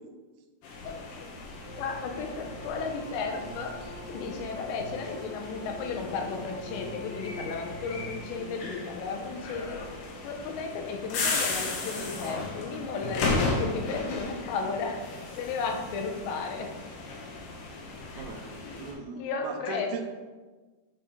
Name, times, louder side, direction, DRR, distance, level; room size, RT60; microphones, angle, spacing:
sound 1, 0.6-18.9, left 3 dB, 65° left, 2.6 m, -36 dB
voice 1, 0.8-1.3 1.8-3.8 4.1-9.8 10.2-15.0 15.4-16.7 18.1-18.3 18.6-18.8 19.2-19.9, left 4 dB, 85° left, 3 dB, 3.0 m, -34 dB
sound 2, 1.6-8.6, equal, 60° right, 3.2 m, -44 dB
voice 2, 18.2-20.0, right 4 dB, 80° right, 4 dB, 2.7 m, -39 dB
10.0 x 5.6 x 3.2 m, 1.3 s
omnidirectional pair, 5.0 m